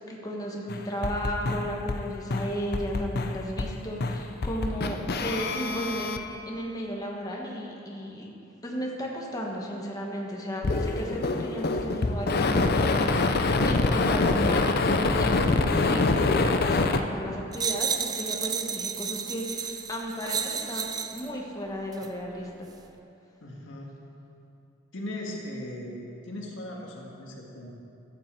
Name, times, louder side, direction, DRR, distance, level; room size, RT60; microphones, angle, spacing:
voice 1, 0.0-8.3 8.6-22.7, equal, 20° left, -2 dB, 1.2 m, -34 dB
sound 1, 0.7-2.0 2.3-3.7 4.0-6.2 10.6-17.0, left 3 dB, 55° left, 0.6 m, -25 dB
sound 2, 17.5-21.3 21.9-22.1, right 6 dB, 20° right, 0.5 m, -32 dB
voice 2, 23.4-23.9 24.9-27.7, left 1 dB, 80° left, -2 dB, 1.8 m, -38 dB
14.0 x 8.6 x 4.5 m, 2.8 s
head